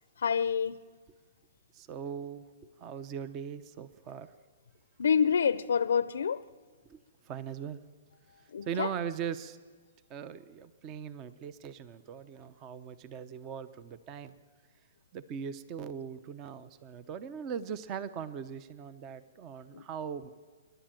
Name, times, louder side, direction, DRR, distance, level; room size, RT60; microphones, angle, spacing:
voice 1, 0.2-0.8 5.0-6.4 8.5-8.9 19.7-19.8, left 7 dB, 85° left, 0.6 m, -27 dB
voice 2, 1.7-2.5 2.8-4.3 6.9-7.8 8.4-9.6 10.1-14.4 15.1-20.3, right 7 dB, 25° right, 0.7 m, -40 dB
27.0 x 11.5 x 9.0 m
hypercardioid pair, 155°, 0 cm